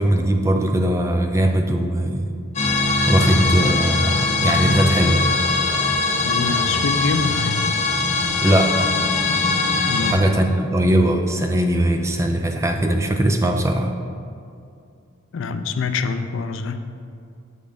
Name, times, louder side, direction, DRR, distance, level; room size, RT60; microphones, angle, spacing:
voice 1, 0.0-2.3 3.1-5.3 8.4-8.9 10.1-13.9, right 1 dB, 15° right, 4 dB, 0.3 m, -20 dB
sound 1, 2.5-10.1, left 3 dB, 35° left, 0.7 m, -21 dB
voice 2, 6.2-7.7 9.9-10.3 15.3-16.8, left 4 dB, 65° left, 9 dB, 0.4 m, -25 dB
7.0 x 3.6 x 5.0 m, 2.5 s
head